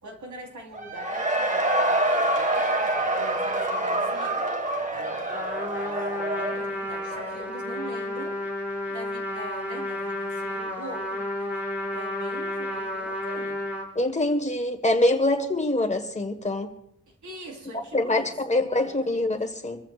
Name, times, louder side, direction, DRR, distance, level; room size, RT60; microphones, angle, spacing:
voice 1, 0.0-2.8 3.1-4.5 4.9-8.4 8.9-13.6 17.1-18.3 18.7-19.3, right 2 dB, 85° right, 0 dB, 4.1 m, -42 dB
Cheering / Crowd, 0.7-7.5, right 1 dB, 25° right, 1.8 m, -26 dB
Trumpet, 5.3-13.9, left 1 dB, 5° right, 5.7 m, -31 dB
voice 2, 13.9-16.7 17.9-19.8, left 1 dB, 25° left, 6 dB, 1.6 m, -24 dB
26.5 x 14.5 x 2.5 m, 0.73 s
wide cardioid pair, 115°, 29 cm